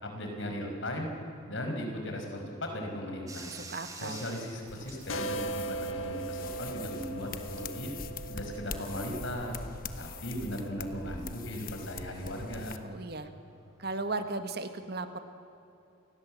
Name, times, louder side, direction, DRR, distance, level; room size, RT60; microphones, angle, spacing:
voice 1, 0.0-1.1 1.5-3.5 4.0-7.9 8.3-9.6 10.0-12.8, equal, 65° left, 3 dB, 5.5 m, -37 dB
Bathtub (filling or washing), 3.3-14.4, right 3 dB, 15° right, 1.8 m, -53 dB
voice 2, 3.5-4.2 12.8-13.3 13.8-15.2, right 3 dB, 50° right, 8 dB, 1.6 m, -36 dB
sound 1, 4.7-12.8, left 5 dB, 45° left, 1.1 m, -44 dB
sound 2, 5.1-10.5, right 2 dB, 80° left, 1.6 m, -39 dB
29.0 x 20.0 x 7.6 m, 2.8 s
head